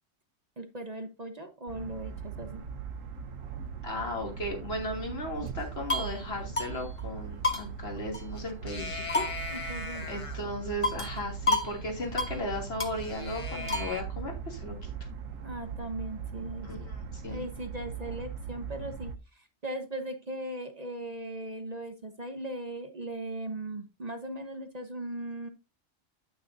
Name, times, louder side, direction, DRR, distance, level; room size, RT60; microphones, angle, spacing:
voice 1, 0.6-2.6 9.5-10.1 15.4-17.0 17.3-25.5, right 1 dB, 35° right, 7 dB, 1.0 m, -38 dB
sound 1, 1.7-19.1, right 6 dB, 75° right, 1.2 m, -40 dB
voice 2, 3.8-9.8 10.1-14.9 16.6-17.5, left 1 dB, 50° left, 1 dB, 3.0 m, -36 dB
sound 2, 5.6-6.2 6.6-6.7 7.0-7.1 7.4-8.4 8.7-10.4 10.8-11.2 11.5-11.7 12.0-12.4 12.8-14.0, left 2 dB, 25° left, 1.2 m, -31 dB
9.6 x 9.1 x 2.7 m, 0.25 s
omnidirectional pair, 1.4 m